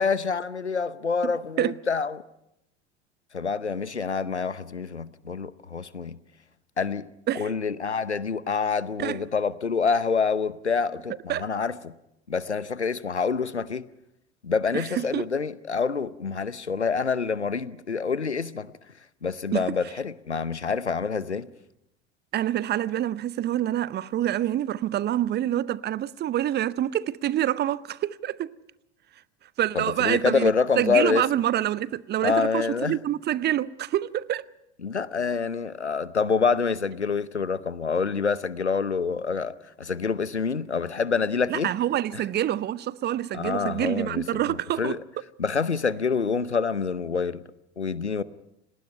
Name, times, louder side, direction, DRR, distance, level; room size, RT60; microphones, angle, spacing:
voice 1, 0.0-2.2 3.3-6.2 6.8-7.1 7.3-11.9 12.3-13.8 14.4-18.7 19.2-21.5 29.7-31.2 32.2-33.0 34.8-41.7 42.1-42.2 43.3-45.0 45.4-47.4 47.8-48.2, left 5 dB, 90° left, 0.9 m, -27 dB
voice 2, 14.7-15.3 19.5-19.7 22.3-28.5 29.6-34.5 41.5-45.0, right 12 dB, 30° right, 0.7 m, -27 dB
29.0 x 19.0 x 5.7 m
figure-of-eight pair, 70°, 33 cm